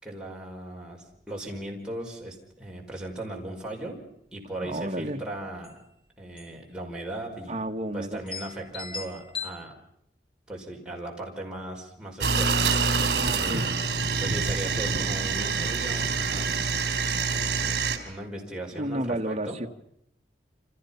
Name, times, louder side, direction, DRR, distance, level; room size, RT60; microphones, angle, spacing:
voice 1, 0.0-4.0 4.3-5.8 6.2-7.5 7.9-9.7 10.5-13.1 13.3-13.7 14.2-16.5 17.3-19.6, right 1 dB, 5° right, -2 dB, 5.2 m, -37 dB
sound 1, 1.2-1.3 1.6-1.7 2.1-2.5 3.0-3.2 3.6-4.2 5.3-5.4 5.6-5.8 6.4-6.7 6.9-7.0 7.7-7.8 8.3-9.5, left 5 dB, 30° left, 2.9 m, -39 dB
voice 2, 4.6-5.2 7.5-8.2 13.1-13.7 18.7-19.7, right 1 dB, 35° right, 3 dB, 1.5 m, -31 dB
sound 2, 12.2-18.0, right 4 dB, 65° right, 3.6 m, -26 dB
29.0 x 26.5 x 5.8 m, 0.74 s
head